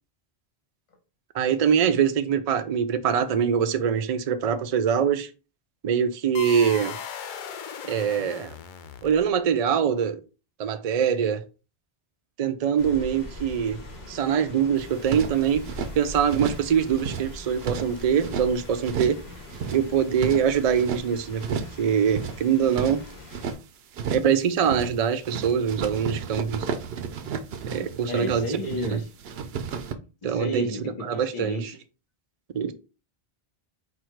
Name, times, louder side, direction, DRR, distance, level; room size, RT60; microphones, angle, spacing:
voice 1, 1.3-5.3 5.8-7.0 7.9-8.5 9.0-10.2 10.6-11.4 12.4-13.8 14.1-15.7 16.0-19.2 19.7-23.0 24.1-26.7 27.7-28.5 28.8-29.0 30.2-30.7 31.0-31.7 32.5-32.7, right 7 dB, 55° right, 0.4 m, -23 dB
sound 1, 6.3-9.5, left 7 dB, 60° left, 0.6 m, -37 dB
Rain, 12.8-23.5, left 1 dB, 80° left, 1.7 m, -42 dB
sound 2, 14.8-15.9 16.3-16.7 16.9-18.5 18.8-19.2 19.5-21.0 21.4-21.8 22.0-23.6 23.9-24.4 24.6-25.0 25.2-28.9 29.2-29.9, right 6 dB, 75° right, 0.9 m, -33 dB
voice 2, 28.1-29.1 30.2-31.8, left 1 dB, 35° left, 0.8 m, -32 dB
4.7 x 2.4 x 4.4 m
omnidirectional pair, 1.0 m